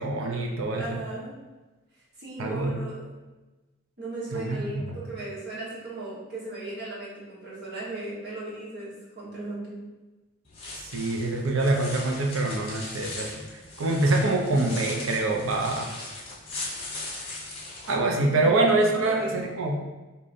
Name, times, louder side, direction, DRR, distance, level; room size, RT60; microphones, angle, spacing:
voice 1, 0.0-1.0 2.4-2.8 4.3-5.0 10.7-16.0 17.9-19.8, right 2 dB, 75° right, 1 dB, 0.6 m, -25 dB
voice 2, 0.8-1.4 2.2-3.2 4.0-9.8 18.2-18.5 18.8-19.4, right 2 dB, 50° right, -7 dB, 1.2 m, -37 dB
sound 1, 10.5-17.9, left 2 dB, 25° left, 0.7 m, -39 dB
5.0 x 2.8 x 2.6 m, 1.1 s
head